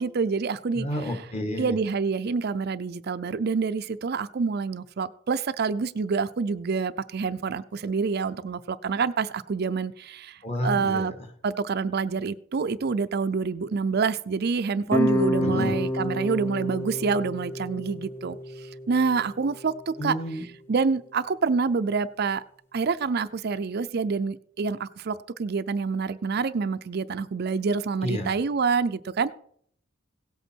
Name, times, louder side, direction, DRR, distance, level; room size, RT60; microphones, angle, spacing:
voice 1, 0.0-1.2 1.6-11.1 11.4-20.2 20.7-22.4 22.7-29.3, right 5 dB, 50° right, 12 dB, 0.5 m, -27 dB
voice 2, 0.7-1.7 10.4-11.1 15.4-15.7 20.0-20.5 28.0-28.3, left 1 dB, 30° left, 7 dB, 1.7 m, -30 dB
sound 1, 14.9-20.0, left 1 dB, 10° left, 0.5 m, -29 dB
17.0 x 8.1 x 4.5 m, 0.64 s
head